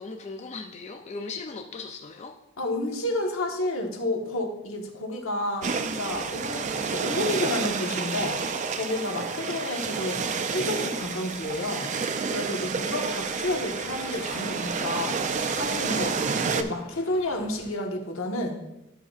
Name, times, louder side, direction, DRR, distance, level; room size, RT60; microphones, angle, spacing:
voice 1, 0.0-2.4, left 4 dB, 35° left, 4 dB, 0.4 m, -38 dB
voice 2, 2.6-8.4 8.7-11.9 12.3-15.2 15.5-16.2 16.5-18.6, left 1 dB, 85° left, 1 dB, 1.3 m, -30 dB
sound 1, 5.6-16.6, right 5 dB, 35° right, 0.4 m, -29 dB
sound 2, 12.6-17.7, left 1 dB, 55° left, 1.9 m, -47 dB
12.0 x 5.5 x 2.4 m, 0.89 s
head